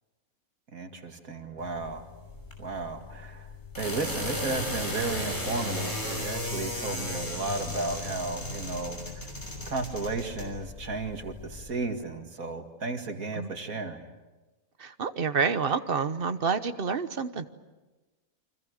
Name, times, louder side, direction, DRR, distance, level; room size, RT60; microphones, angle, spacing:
voice 1, 0.7-2.0 2.6-3.5 3.8-9.0 9.7-14.0, right 3 dB, 75° right, 4 dB, 2.6 m, -34 dB
sound 1, 1.6-11.7, left 1 dB, 35° left, 6.1 m, -36 dB
voice 2, 14.8-17.5, right 5 dB, 40° right, 10 dB, 1.2 m, -28 dB
29.0 x 25.5 x 6.5 m, 1.2 s
omnidirectional pair, 1.5 m